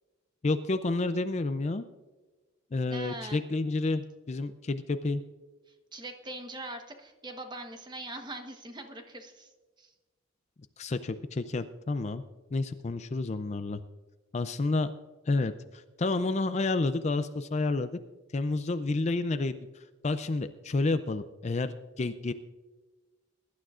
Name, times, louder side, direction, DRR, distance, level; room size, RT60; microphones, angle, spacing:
voice 1, 0.4-1.9 2.7-5.2 10.8-12.2 12.5-13.8 14.3-14.9 15.3-18.0 18.3-19.6 20.0-22.3, left 3 dB, 30° left, 11 dB, 0.4 m, -30 dB
voice 2, 2.9-3.4 5.9-9.5 9.8-9.9, right 2 dB, 20° right, 5 dB, 1.1 m, -42 dB
21.5 x 11.5 x 2.5 m, 1.3 s
head